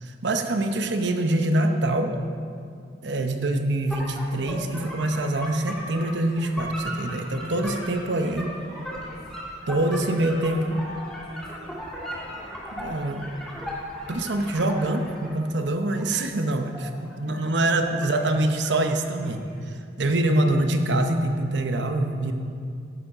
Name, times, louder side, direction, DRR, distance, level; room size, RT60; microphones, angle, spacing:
voice 1, 0.0-2.1 3.0-8.5 9.7-10.8 12.8-13.2 14.1-22.3, right 1 dB, 75° right, 6 dB, 0.9 m, -25 dB
sound 1, 3.9-15.3 15.8-18.3 18.5-19.4, equal, ahead, 2.2 m, -37 dB
voice 2, 8.0-9.3 10.2-12.7 19.3-19.7, left 1 dB, 55° left, -4 dB, 2.9 m, -46 dB
11.0 x 8.2 x 5.0 m, 2.4 s
head